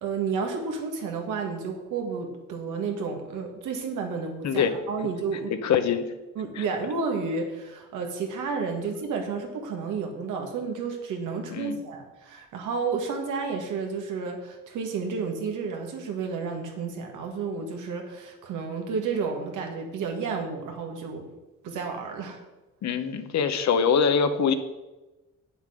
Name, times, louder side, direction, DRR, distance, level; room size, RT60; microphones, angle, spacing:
voice 1, 0.0-5.5 6.4-21.3 21.6-22.4, right 5 dB, 85° right, 3 dB, 1.7 m, -31 dB
voice 2, 5.6-6.0 6.6-6.7 11.5-11.8 22.8-24.5, left 6 dB, 65° left, 9 dB, 1.0 m, -23 dB
8.4 x 7.1 x 5.0 m, 1.1 s
cardioid pair, 90°, 30 cm